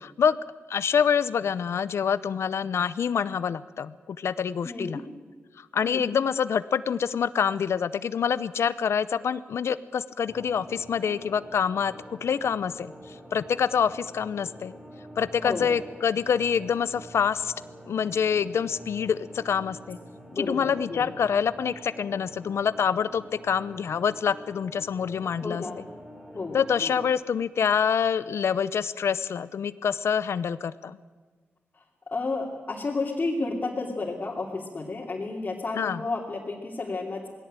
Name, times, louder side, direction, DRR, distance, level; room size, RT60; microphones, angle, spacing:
voice 1, 0.7-5.0 5.6-12.9 13.3-14.7 15.2-17.5 17.9-20.0 20.4-25.6 26.5-31.0 35.8-36.0, left 7 dB, 75° left, 15 dB, 0.7 m, -26 dB
voice 2, 4.6-5.0 5.8-6.0 15.4-15.7 20.3-21.1 25.4-25.8 26.3-26.9 32.1-37.3, left 3 dB, 40° left, -3 dB, 2.9 m, -32 dB
sound 1, 10.3-27.1, equal, 20° right, 4.1 m, -46 dB
20.0 x 17.0 x 8.9 m, 1.5 s
wide cardioid pair, 120°, 4 cm